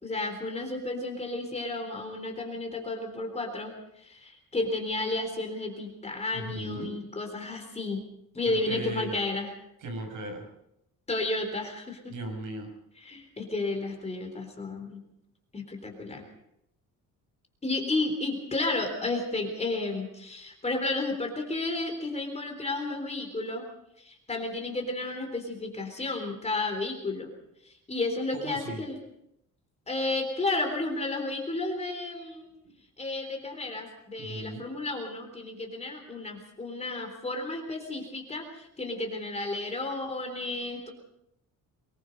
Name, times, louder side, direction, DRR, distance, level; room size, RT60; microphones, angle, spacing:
voice 1, 0.0-8.0 8.3-9.5 11.1-12.1 13.0-15.0 15.5-16.2 17.6-23.7 24.0-27.3 27.6-29.0 29.9-32.5 33.0-40.9, left 2 dB, 20° left, 3 dB, 3.8 m, -32 dB
voice 2, 6.3-6.9 8.5-9.2 9.8-10.5 12.1-12.7 28.3-28.8 32.6-32.8 34.2-34.6, right 1 dB, 65° right, 3 dB, 6.9 m, -37 dB
24.0 x 20.5 x 5.4 m, 0.79 s
cardioid pair, 145°, 33 cm